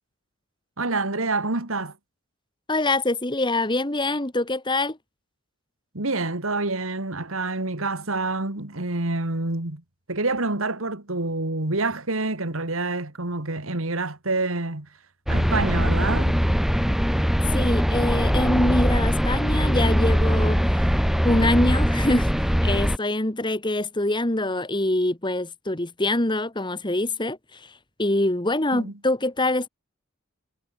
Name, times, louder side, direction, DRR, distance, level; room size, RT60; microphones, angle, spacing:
voice 1, 0.8-2.0 5.9-9.8 10.1-14.9 15.3-16.4 28.7-28.9, right 2 dB, 75° right, 2.6 m, -27 dB
voice 2, 2.7-5.0 17.5-20.9 21.2-22.3 22.6-27.7 28.0-29.7, left 2 dB, 20° left, 1.8 m, -24 dB
sound 1, 15.3-23.0, equal, ahead, 3.1 m, -21 dB
head